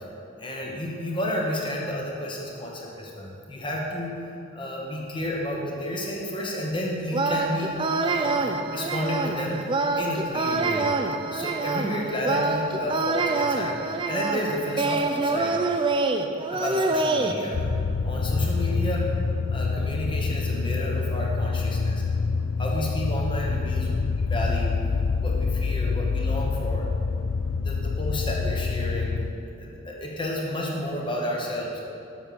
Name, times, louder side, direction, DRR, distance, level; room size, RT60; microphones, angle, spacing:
voice 1, 0.4-4.2 4.5-11.0 11.3-15.6 16.5-17.7 18.0-19.2 19.5-22.0 22.6-23.9 24.3-24.9 25.2-26.9 27.6-29.2 29.6-31.8, left 1 dB, 25° left, -2 dB, 1.1 m, -31 dB
sound 1, 7.1-17.3, right 3 dB, 25° right, 0.4 m, -26 dB
sound 2, 17.5-29.3, left 4 dB, 70° left, 0.4 m, -26 dB
7.2 x 6.0 x 5.2 m, 2.8 s
head